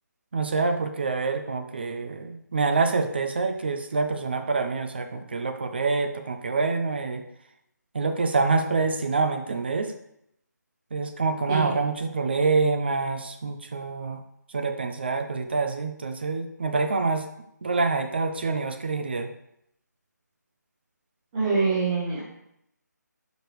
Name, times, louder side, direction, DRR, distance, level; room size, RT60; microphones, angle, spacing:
voice 1, 0.3-7.2 7.9-9.9 10.9-14.2 14.5-17.2 17.6-19.3, right 4 dB, 35° right, 7 dB, 0.5 m, -26 dB
voice 2, 21.3-22.2, right 4 dB, 15° right, -7 dB, 1.1 m, -25 dB
9.2 x 5.1 x 3.1 m, 0.76 s
figure-of-eight pair, 170°, 10 cm